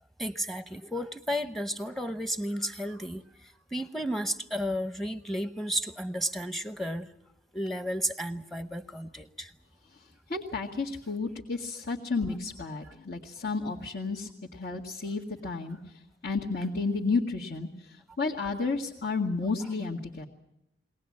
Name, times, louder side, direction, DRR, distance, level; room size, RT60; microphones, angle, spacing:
voice 1, 0.2-3.2 3.7-7.1 7.5-9.5 12.8-12.9, equal, ahead, 11 dB, 0.8 m, -33 dB
voice 2, 10.3-15.8 16.2-17.7 18.2-20.3, left 4 dB, 70° left, -3 dB, 1.9 m, -31 dB
22.0 x 18.5 x 8.7 m, 0.85 s
head